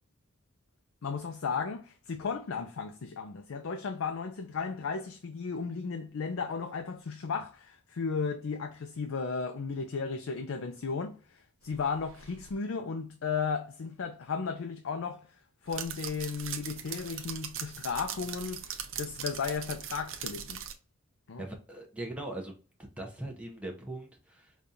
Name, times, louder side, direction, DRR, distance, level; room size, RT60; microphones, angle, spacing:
voice 1, 1.0-11.2 11.6-15.3 15.6-20.6 21.3-21.4, left 5 dB, 90° left, 0.5 m, -35 dB
sound 1, 11.7-12.5 15.7-20.7, right 8 dB, 70° right, 0.6 m, -40 dB
voice 2, 21.4-24.7, right 1 dB, 5° right, 0.6 m, -41 dB
5.1 x 2.3 x 2.6 m
head